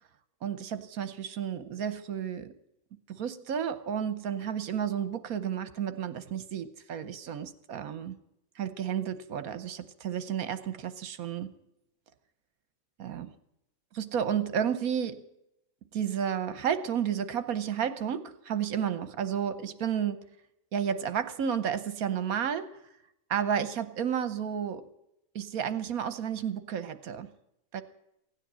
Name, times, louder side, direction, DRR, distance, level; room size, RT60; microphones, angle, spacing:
voice 1, 0.4-2.5 3.1-8.2 8.6-11.5 13.0-13.3 13.9-15.3 15.9-20.2 20.7-22.8 23.3-24.9 25.3-27.3 27.7-27.8, right 8 dB, 70° right, 1.4 m, -32 dB
16.5 x 9.9 x 7.5 m
omnidirectional pair, 1.6 m